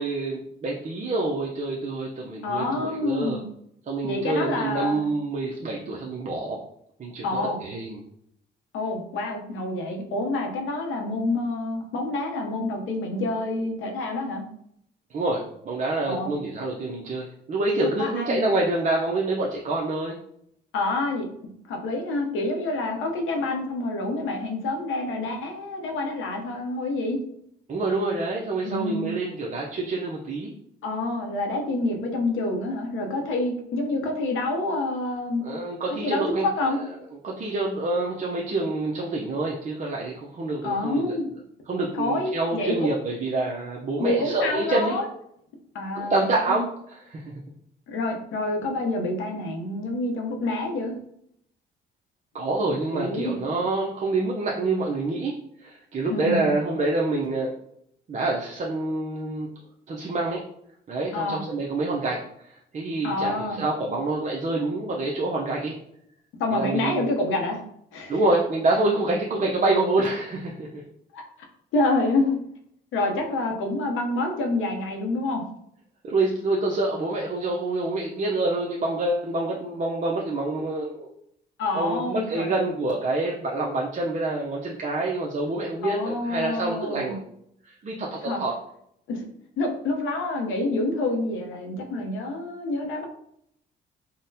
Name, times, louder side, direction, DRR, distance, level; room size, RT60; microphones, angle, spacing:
voice 1, 0.0-3.4 3.9-6.6 7.0-7.3 7.6-8.0 15.1-20.2 27.7-30.5 35.4-36.5 36.8-36.9 37.2-41.1 41.7-45.0 45.9-47.3 52.3-57.5 58.1-59.5 59.9-60.4 60.9-62.2 62.5-65.8 66.5-67.1 68.1-70.8 76.0-81.1 81.7-87.2 87.6-88.5, right 2 dB, 40° right, -2 dB, 0.5 m, -27 dB
voice 2, 2.4-3.4 4.0-5.0 7.2-7.6 8.7-14.4 16.1-16.3 17.8-18.5 20.7-27.2 28.7-29.1 30.8-35.4 36.0-36.8 40.6-41.3 42.0-42.9 44.0-45.0 45.7-46.6 47.9-51.0 52.9-53.4 56.1-56.5 61.1-61.4 63.0-63.6 66.4-67.6 67.9-68.2 71.1-71.2 71.7-72.4 72.9-75.4 81.6-82.5 85.8-87.2 88.2-88.4 89.1-89.3 89.6-93.0, left 2 dB, 80° left, 2 dB, 0.7 m, -27 dB
3.8 x 2.1 x 2.7 m, 0.72 s
cardioid pair, 90°, 20 cm